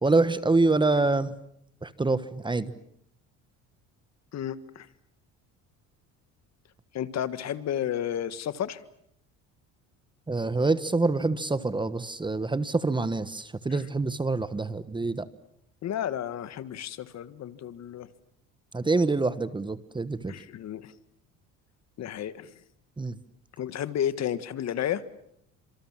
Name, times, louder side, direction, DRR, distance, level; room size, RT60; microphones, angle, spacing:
voice 1, 0.0-1.3 1.8-2.7 10.3-15.3 18.7-20.3 23.0-23.2, right 3 dB, 15° right, 15 dB, 1.2 m, -26 dB
voice 2, 4.3-4.9 6.9-8.8 13.7-13.8 15.8-18.1 20.3-20.9 22.0-22.5 23.6-25.0, left 10 dB, 50° left, 14 dB, 1.7 m, -32 dB
30.0 x 26.5 x 7.4 m, 0.71 s
cardioid pair, 120°, 35 cm